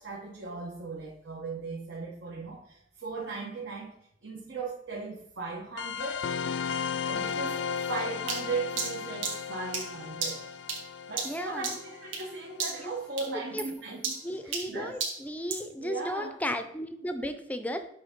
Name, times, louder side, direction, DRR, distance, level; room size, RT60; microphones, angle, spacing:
voice 1, 0.0-4.0 4.2-6.3 7.0-7.6 7.9-10.4 11.1-15.0 15.8-16.4, right 3 dB, 70° right, -2 dB, 1.0 m, -37 dB
sound 1, 5.8-12.9, left 6 dB, 75° left, 0.3 m, -35 dB
sound 2, 8.3-12.3 12.6-12.9 13.2-15.7, right 4 dB, 85° right, 1.8 m, -35 dB
voice 2, 11.2-11.7 12.8-12.9 13.3-13.7 14.2-17.9, equal, 10° left, 8 dB, 0.5 m, -35 dB
7.7 x 3.5 x 5.1 m, 0.70 s
head